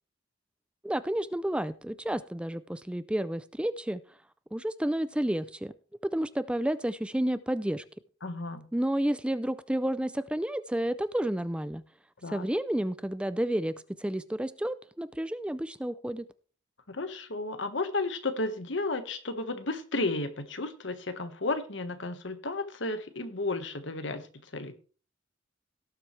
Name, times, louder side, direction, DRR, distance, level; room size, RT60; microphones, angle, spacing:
voice 1, 0.8-4.0 4.5-5.7 6.0-7.8 8.7-11.8 12.3-16.3, right 1 dB, 5° right, 14 dB, 0.4 m, -31 dB
voice 2, 8.2-8.7 12.2-12.5 16.9-24.3 24.5-24.7, left 2 dB, 70° left, 10 dB, 1.4 m, -33 dB
18.0 x 7.4 x 3.3 m, 0.38 s
head